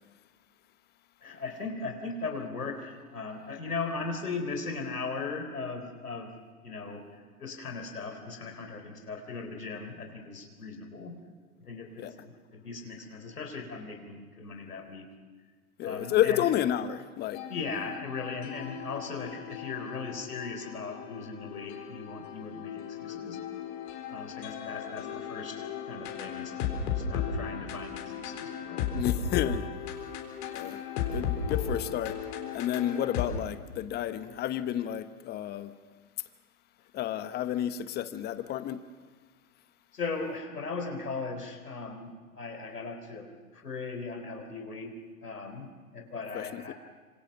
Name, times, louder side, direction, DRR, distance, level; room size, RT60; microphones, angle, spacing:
voice 1, 1.2-6.3 6.6-11.2 11.6-15.1 15.8-16.5 17.5-23.4 24.1-26.7 26.9-28.9 39.9-46.7, left 4 dB, 85° left, 4.0 m, -38 dB
voice 2, 15.8-17.4 28.9-29.7 30.5-30.8 31.1-32.2 32.5-35.7 36.9-38.8 46.3-46.7, left 11 dB, 20° left, 1.0 m, -30 dB
sound 1, 17.3-33.3, left 7 dB, 45° left, 4.0 m, -36 dB
26.5 x 26.0 x 6.0 m
hypercardioid pair, 115°, 45 cm